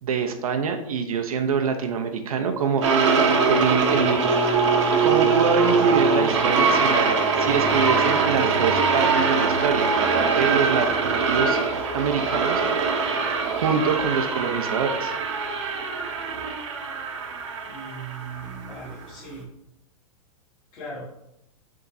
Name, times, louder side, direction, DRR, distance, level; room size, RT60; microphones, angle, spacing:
voice 1, 0.0-2.8 3.5-4.2 5.0-11.6 11.9-12.6 13.5-15.2, right 6 dB, 75° right, 5 dB, 0.8 m, -25 dB
sound 1, 2.8-19.1, right 4 dB, 55° right, 1.2 m, -22 dB
voice 2, 17.6-19.5 20.7-21.1, right 3 dB, 25° left, -11 dB, 2.1 m, -38 dB
9.6 x 3.7 x 2.7 m, 0.82 s
hypercardioid pair, 170°, 18 cm